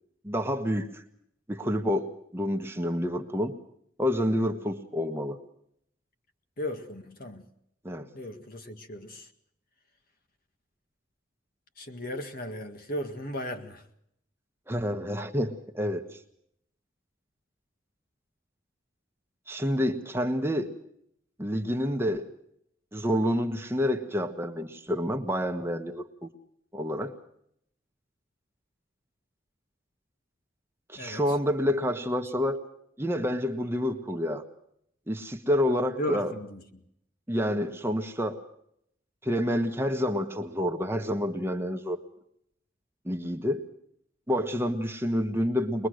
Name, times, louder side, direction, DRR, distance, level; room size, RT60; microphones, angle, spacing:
voice 1, 0.2-1.0 1.5-3.5 4.0-5.4 7.8-8.1 14.7-16.0 19.5-20.7 21.4-22.3 22.9-26.3 26.7-27.1 30.9-32.6 33.0-34.4 35.1-36.3 37.3-38.4 39.2-42.0 43.0-43.6 44.3-45.9, equal, 15° right, 5 dB, 1.3 m, -28 dB
voice 2, 6.6-7.5 8.1-9.3 11.8-13.8 31.0-31.2 36.0-36.8, left 1 dB, 50° left, 6 dB, 2.0 m, -36 dB
22.0 x 22.0 x 6.4 m, 0.73 s
head